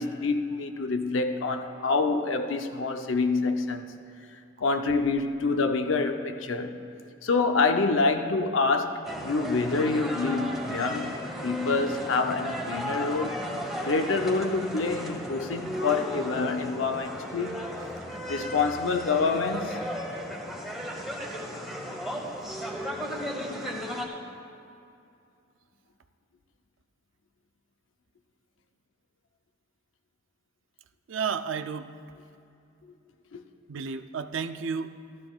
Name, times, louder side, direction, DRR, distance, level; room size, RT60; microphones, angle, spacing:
voice 1, 0.0-3.9 4.6-6.8 7.2-13.4 13.8-17.6 18.3-19.8 33.3-33.4, left 3 dB, 85° left, 0.7 m, -27 dB
sound 1, 9.0-24.1, equal, ahead, 1.2 m, -35 dB
voice 2, 31.1-31.9 33.7-34.9, right 6 dB, 85° right, 0.4 m, -32 dB
15.0 x 13.5 x 2.4 m
head